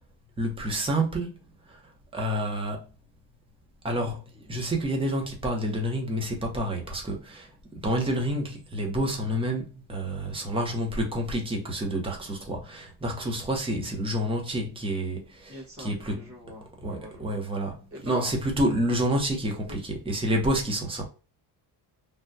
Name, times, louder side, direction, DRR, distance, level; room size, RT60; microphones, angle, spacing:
voice 1, 0.4-1.4 1.7-1.8 2.1-2.9 3.8-7.5 7.8-16.2 16.8-21.1, right 1 dB, 10° right, 0.6 m, -29 dB
voice 2, 15.5-17.3 17.9-18.3 19.7-19.8, equal, 30° right, 1.3 m, -43 dB
3.4 x 2.2 x 2.5 m
cardioid pair, 175°, 44 cm